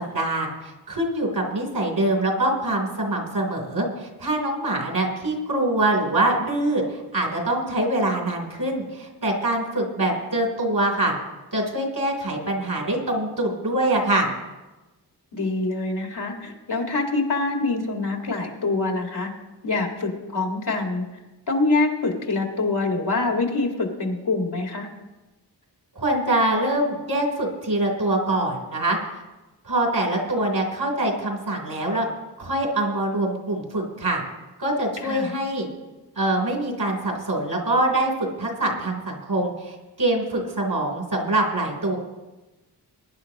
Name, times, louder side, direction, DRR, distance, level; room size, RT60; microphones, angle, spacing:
voice 1, 0.1-11.1 11.5-14.3 26.0-29.0 29.6-32.1 32.4-34.2 34.6-35.7 36.2-38.1 38.4-42.0, right 1 dB, 65° right, 0 dB, 3.5 m, -24 dB
voice 2, 15.3-19.3 19.6-21.0 21.5-24.9 35.0-35.3, left 3 dB, 70° left, 1 dB, 2.1 m, -25 dB
21.5 x 10.5 x 3.0 m, 1.1 s
wide cardioid pair, 65°, 41 cm